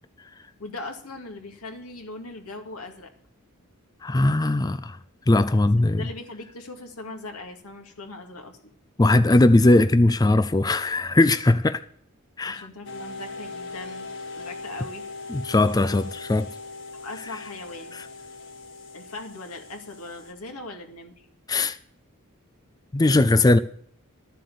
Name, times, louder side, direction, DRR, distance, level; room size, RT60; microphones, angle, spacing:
voice 1, 0.6-3.1 5.9-8.6 12.4-14.1 14.3-15.0 16.9-18.0 18.9-21.3, left 2 dB, 90° left, 2.4 m, -39 dB
voice 2, 4.0-5.0 5.3-6.0 9.0-11.8 12.4-12.7 15.3-16.5 21.5-21.8 22.9-23.6, left 2 dB, 20° left, 0.4 m, -19 dB
sound 1, 12.8-20.3, left 3 dB, 60° left, 1.9 m, -40 dB
13.0 x 7.6 x 6.9 m
head